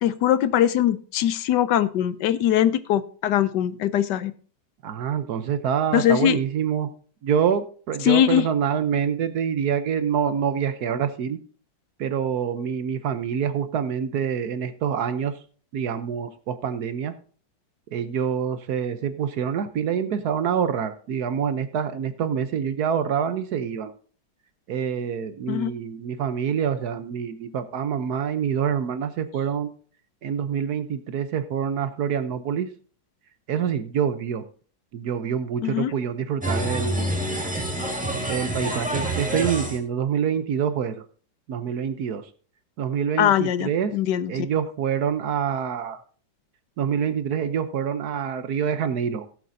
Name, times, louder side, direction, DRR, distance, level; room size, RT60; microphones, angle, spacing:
voice 1, 0.0-4.3 5.9-6.4 8.0-8.4 25.5-25.7 35.6-35.9 43.2-44.3, left 11 dB, 75° left, 14 dB, 1.2 m, -21 dB
voice 2, 4.8-6.9 7.2-11.4 12.0-15.4 15.7-17.1 17.9-23.9 24.7-29.7 30.2-32.7 33.5-34.4 34.9-37.1 38.2-41.0 41.5-42.2 42.8-44.0 44.3-46.0 46.8-49.3, right 8 dB, 65° right, 11 dB, 1.2 m, -26 dB
sound 1, 36.4-39.8, right 1 dB, 5° right, 1.6 m, -27 dB
17.5 x 7.6 x 2.7 m, 0.41 s
omnidirectional pair, 2.0 m